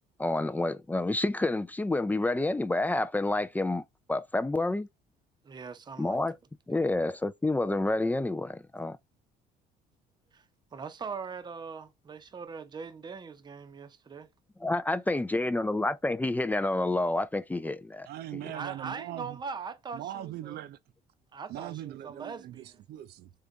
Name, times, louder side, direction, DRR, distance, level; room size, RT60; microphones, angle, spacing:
voice 1, 0.2-3.8 4.1-4.9 6.0-6.4 6.7-9.0 14.6-18.1, left 2 dB, 10° left, 0.3 m, -28 dB
voice 2, 5.4-6.2 6.8-6.9 10.3-10.4 10.7-14.3 18.5-20.6 21.3-22.7, right 5 dB, 25° right, 0.7 m, -41 dB
voice 3, 18.1-19.4 19.9-20.8 21.5-23.3, right 12 dB, 70° right, 0.6 m, -40 dB
3.7 x 3.4 x 3.9 m
cardioid pair, 110°, 17 cm